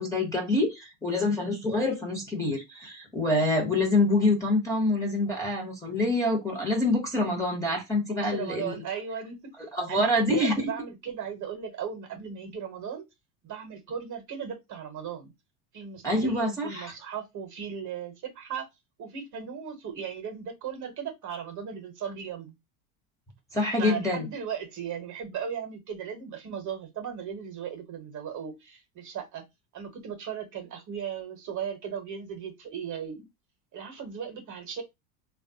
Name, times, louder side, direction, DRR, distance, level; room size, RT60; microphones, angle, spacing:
voice 1, 0.0-8.8 9.7-10.7 16.0-16.9 23.5-24.3, left 2 dB, 5° left, 0.8 m, -26 dB
voice 2, 8.1-9.5 9.9-13.0 13.4-15.3 15.7-18.7 19.0-22.5 23.8-29.4 29.7-33.3 33.7-34.8, right 7 dB, 35° right, 0.9 m, -37 dB
3.3 x 2.3 x 2.7 m
supercardioid pair, 115°, 49 cm